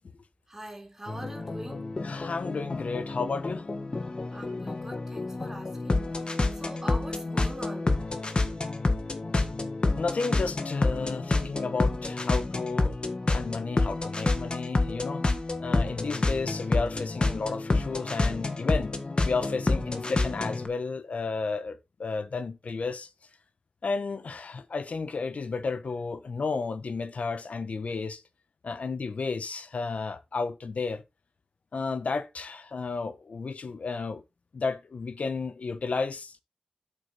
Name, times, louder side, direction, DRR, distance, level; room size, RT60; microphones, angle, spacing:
voice 1, 0.5-1.9 4.3-7.9, right 1 dB, 20° right, 3.8 m, -43 dB
sound 1, 1.1-20.7, left 2 dB, 45° left, 1.6 m, -29 dB
voice 2, 2.0-3.6 10.0-12.9 13.3-15.2 15.6-18.9 19.2-23.1 23.8-28.2 28.6-31.0 31.7-34.2 34.5-36.4, left 4 dB, 80° left, 1.1 m, -32 dB
8.5 x 7.3 x 4.2 m
wide cardioid pair, 100°, 2 cm